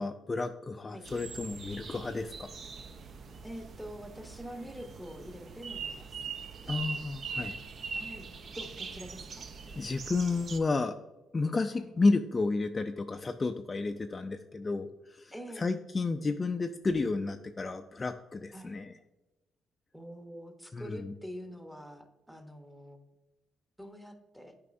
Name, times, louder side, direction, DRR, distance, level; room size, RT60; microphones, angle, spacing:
voice 1, 0.0-2.5 6.7-7.6 9.8-11.0 11.3-18.9 20.7-21.1, left 3 dB, 30° left, 7 dB, 0.3 m, -31 dB
sound 1, 1.0-10.6, right 5 dB, 50° right, 0.5 m, -42 dB
voice 2, 3.4-6.2 7.9-8.3 8.5-9.5 11.7-11.9 15.3-15.7 18.5-18.8 19.9-23.0 23.8-24.5, equal, 5° right, 6 dB, 0.9 m, -45 dB
8.2 x 4.8 x 2.5 m, 1.1 s
cardioid pair, 90°, 0 cm